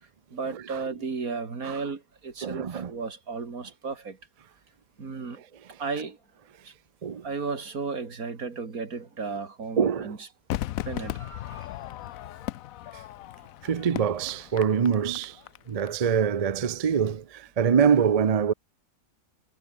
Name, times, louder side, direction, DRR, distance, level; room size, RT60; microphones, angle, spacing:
voice 1, 0.3-4.2 5.0-5.4 5.8-6.2 6.6-6.7 7.2-10.3 10.8-11.7, right 4 dB, 75° right, 3.0 m, -34 dB
voice 2, 2.4-2.9 7.0-7.2 9.8-10.1 13.6-15.4 15.7-18.5, right 7 dB, 45° right, 0.5 m, -24 dB
Crowd / Fireworks, 10.5-15.9 16.2-16.3, left 14 dB, 75° left, 1.0 m, -36 dB
omnidirectional pair, 1.5 m